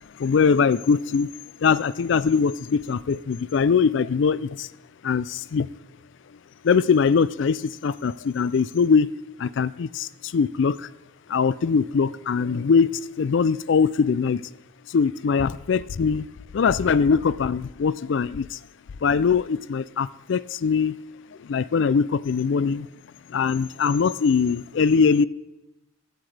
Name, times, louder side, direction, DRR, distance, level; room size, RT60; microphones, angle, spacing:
voice 1, 0.2-1.3 1.6-4.7 5.0-5.7 6.6-9.1 9.4-10.9 11.3-12.9 13.2-14.4 14.9-16.3 16.5-18.6 19.0-20.9 21.5-22.9 23.3-25.3, left 5 dB, 60° left, 18 dB, 0.4 m, -22 dB
16.0 x 12.5 x 3.4 m, 1.0 s
head